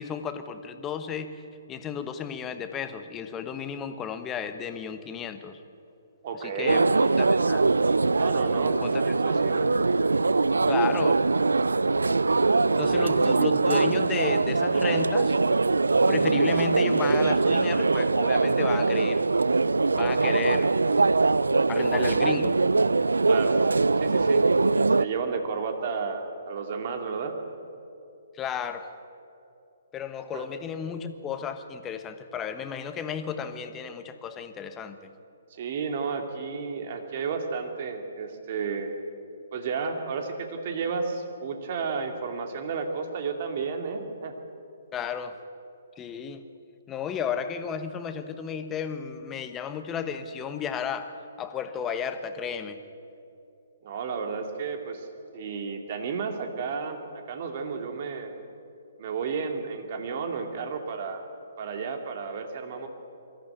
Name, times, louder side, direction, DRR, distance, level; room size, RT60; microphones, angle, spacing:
voice 1, 0.0-1.4 1.7-5.6 6.3-6.8 7.3-7.7 8.8-9.0 10.7-11.2 12.8-15.4 16.1-19.2 19.9-20.7 21.7-22.6 28.3-28.9 29.9-35.0 44.9-45.4 46.0-46.4 46.9-51.1 51.4-52.8, left 7 dB, 20° left, 9 dB, 1.3 m, -33 dB
voice 2, 6.2-6.8 8.2-8.8 9.0-9.7 12.8-13.4 23.3-23.6 24.0-24.5 24.7-27.3 30.3-30.5 35.5-38.9 39.5-44.3 53.8-55.1 55.3-58.3 59.0-61.2 61.6-62.9, right 5 dB, 45° right, 5 dB, 2.6 m, -32 dB
sound 1, 6.7-25.1, right 3 dB, 80° right, 0.4 m, -22 dB
22.5 x 14.5 x 9.1 m, 2.7 s
figure-of-eight pair, 130°, 0 cm